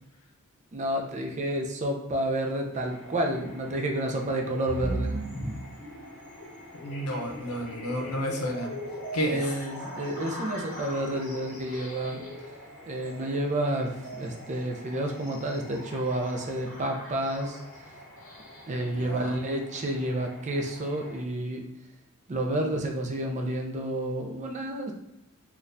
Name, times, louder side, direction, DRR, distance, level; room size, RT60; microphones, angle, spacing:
voice 1, 0.7-5.2 9.2-12.2 12.8-17.6 18.7-21.6 22.3-24.9, right 1 dB, 35° right, 2 dB, 0.5 m, -30 dB
sound 1, 2.7-21.2, left 1 dB, ahead, 1.0 m, -50 dB
sound 2, 4.6-18.7, equal, 40° left, 0.9 m, -40 dB
voice 2, 6.8-8.7 9.1-9.5 18.9-19.4, equal, 80° left, 2 dB, 0.6 m, -31 dB
4.0 x 2.3 x 2.5 m, 0.87 s
head